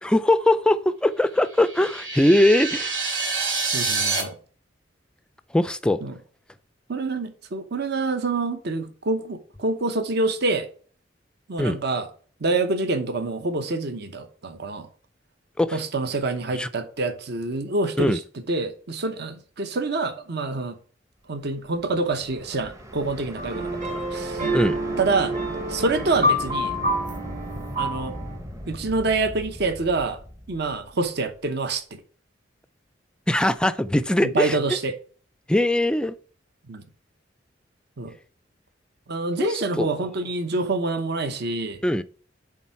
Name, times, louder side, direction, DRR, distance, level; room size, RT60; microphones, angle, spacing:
voice 1, 0.0-2.9 5.5-6.0 11.6-11.8 15.6-15.8 16.5-16.7 18.0-18.2 24.5-24.8 33.3-34.6 35.5-36.2 39.4-39.9 41.8-42.0, left 1 dB, 5° left, 0.3 m, -21 dB
sound 1, 1.4-4.2, right 4 dB, 90° right, 2.6 m, -27 dB
voice 2, 3.7-4.3 6.0-6.1 6.9-10.7 11.5-12.1 12.4-14.9 15.7-18.2 18.5-20.8 21.3-24.5 25.0-25.3 25.7-26.7 27.8-28.1 28.7-30.2 30.5-32.0 34.2-34.9 36.7-36.8 38.0-38.1 39.1-41.8, right 3 dB, 60° right, 0.9 m, -26 dB
sound 2, 21.5-31.5, equal, 15° right, 0.8 m, -39 dB
sound 3, 23.4-28.4, equal, 45° right, 1.3 m, -27 dB
8.5 x 3.7 x 4.6 m
head